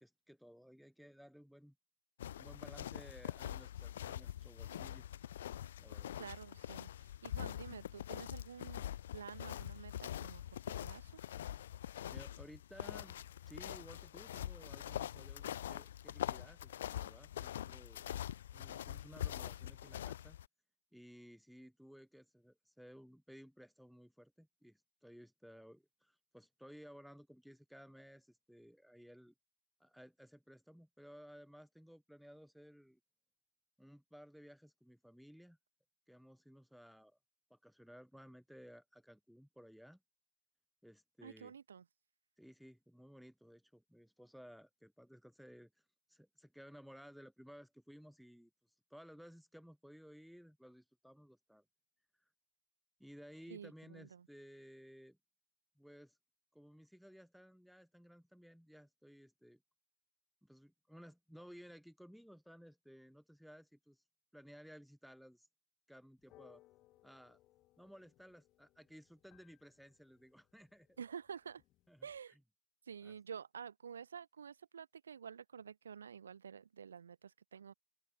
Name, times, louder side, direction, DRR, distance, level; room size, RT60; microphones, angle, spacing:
voice 1, 0.0-1.8 2.4-5.1 5.8-6.2 12.1-13.2 13.5-18.1 18.5-20.4 20.9-29.3 29.8-33.0 33.8-35.6 36.1-37.2 37.5-40.0 40.8-41.5 42.4-48.5 48.9-51.6 53.0-55.2 55.8-56.2 56.5-59.6 60.4-64.0 64.3-65.5 65.9-66.6 67.0-67.4 67.8-71.0 71.9-72.4 73.0-73.1, equal, ahead, 0.5 m, -58 dB
sound 1, 2.2-20.5, left 11 dB, 60° left, 0.4 m, -44 dB
voice 2, 6.2-8.8 9.1-11.2 41.2-41.9 53.5-54.3 71.0-71.6 72.0-72.4 72.9-77.7, right 7 dB, 70° right, 0.9 m, -50 dB
sound 2, 66.2-72.2, left 17 dB, 35° left, 1.5 m, -69 dB
open air
figure-of-eight pair, 90°, 0 cm